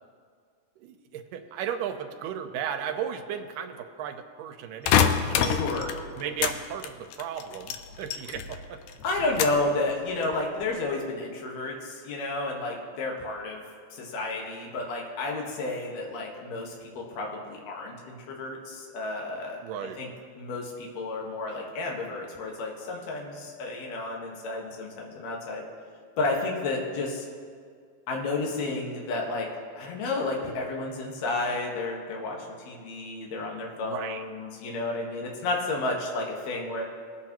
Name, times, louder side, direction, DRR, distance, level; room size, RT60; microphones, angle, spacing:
voice 1, 0.8-5.6 6.2-8.8 19.6-20.0 33.8-34.3, right 8 dB, 85° right, 6 dB, 2.3 m, -35 dB
sound 1, 4.9-6.6 6.8-8.6 8.9-9.7 10.2-10.6, left 8 dB, 80° left, 2.0 m, -25 dB
voice 2, 5.5-5.9 9.0-13.6 13.9-19.6 20.0-20.1 20.4-25.6 26.2-27.3 28.1-29.5 29.7-32.4 32.7-36.8, left 2 dB, 60° left, -1 dB, 2.6 m, -31 dB
20.5 x 8.1 x 3.0 m, 2.1 s
omnidirectional pair, 3.8 m